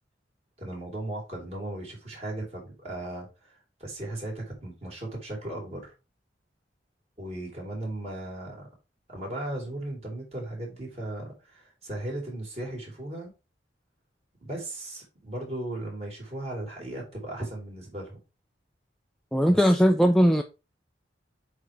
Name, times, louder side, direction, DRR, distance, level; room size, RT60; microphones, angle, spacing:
voice 1, 0.6-5.9 7.2-8.7 9.1-13.3 14.4-18.2 19.5-19.6, right 1 dB, 35° right, 3.6 m, -37 dB
voice 2, 19.3-20.4, equal, ahead, 0.4 m, -19 dB
8.0 x 3.4 x 4.7 m
head